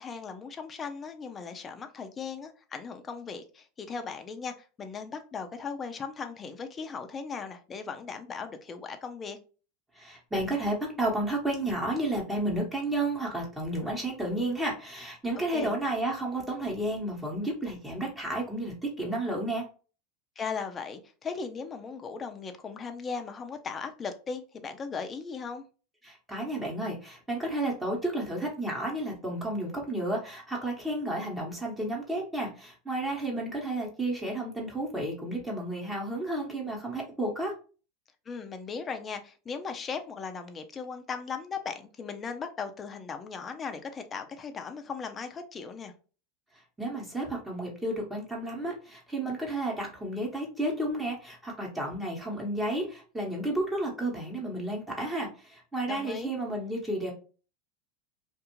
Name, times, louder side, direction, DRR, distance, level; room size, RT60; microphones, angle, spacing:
voice 1, 0.0-9.4 15.5-15.7 20.4-25.7 38.3-45.9 55.9-56.3, left 5 dB, 25° left, 0.5 m, -38 dB
voice 2, 10.0-19.6 26.0-37.5 46.8-57.1, right 1 dB, 10° right, 1.0 m, -32 dB
2.6 x 2.4 x 2.9 m
supercardioid pair, 115°, 0 cm